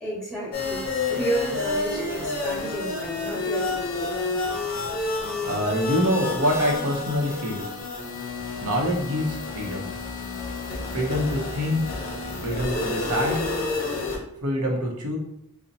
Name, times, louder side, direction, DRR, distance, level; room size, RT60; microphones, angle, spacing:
voice 1, 0.0-0.8 1.1-4.1, right 1 dB, ahead, -6 dB, 1.3 m, -31 dB
sound 1, 0.5-14.2, left 3 dB, 40° left, 0.6 m, -30 dB
voice 2, 5.4-7.7 8.6-9.9 10.9-11.8 12.4-13.4 14.4-15.2, equal, 85° right, 1 dB, 0.7 m, -25 dB
3.9 x 2.0 x 2.7 m, 0.77 s
head